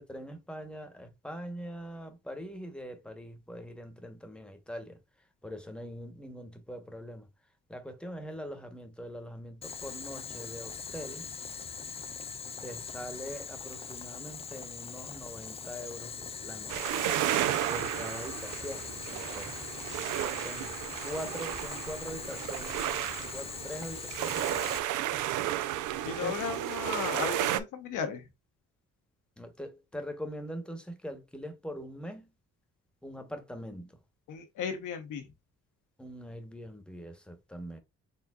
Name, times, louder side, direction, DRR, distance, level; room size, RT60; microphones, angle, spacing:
voice 1, 0.0-7.3 7.7-11.3 12.6-17.0 17.7-19.5 20.3-22.9 23.3-24.4 26.2-26.6 29.4-32.3 33.0-34.0 36.0-37.8, equal, 5° left, 1.0 m, -42 dB
Boiling, 9.6-24.8, left 6 dB, 20° left, 0.3 m, -41 dB
sound 1, 16.7-27.6, right 13 dB, 80° right, 0.5 m, -33 dB
voice 2, 26.0-28.3 34.3-35.3, left 6 dB, 85° left, 1.1 m, -35 dB
4.3 x 3.6 x 2.3 m
cardioid pair, 90°, 30 cm